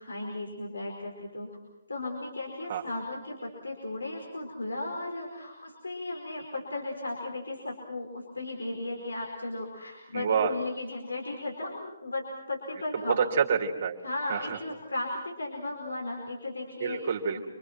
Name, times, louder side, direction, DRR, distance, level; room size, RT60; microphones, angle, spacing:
voice 1, 0.1-0.9 1.3-1.5 1.9-3.2 3.6-5.5 5.8-6.4 6.7-8.1 8.4-11.7 12.0-12.2 12.5-13.2 14.0-15.1 15.4-17.0, left 2 dB, 80° left, -1 dB, 4.7 m, -35 dB
voice 2, 10.1-10.5 13.1-14.0 14.3-14.6 16.8-17.5, right 6 dB, 45° right, 1 dB, 2.9 m, -27 dB
27.0 x 25.0 x 6.1 m, 0.97 s
figure-of-eight pair, 135°, 0 cm